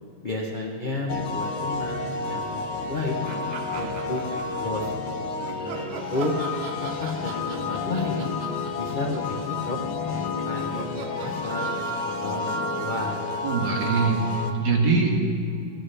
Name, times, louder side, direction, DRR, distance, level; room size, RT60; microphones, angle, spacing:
voice 1, 0.2-3.2 3.7-4.9 5.4-6.4 6.8-8.3 8.8-9.8 10.1-12.5 12.8-13.2, left 2 dB, 40° left, -3 dB, 0.7 m, -32 dB
sound 1, 1.1-14.5, left 3 dB, 85° left, 1.6 m, -30 dB
sound 2, 3.3-4.9 5.4-13.7, right 6 dB, 85° right, 1.5 m, -41 dB
voice 2, 13.4-15.2, right 4 dB, 65° right, -1 dB, 2.0 m, -23 dB
15.5 x 12.0 x 3.3 m, 2.5 s
omnidirectional pair, 2.0 m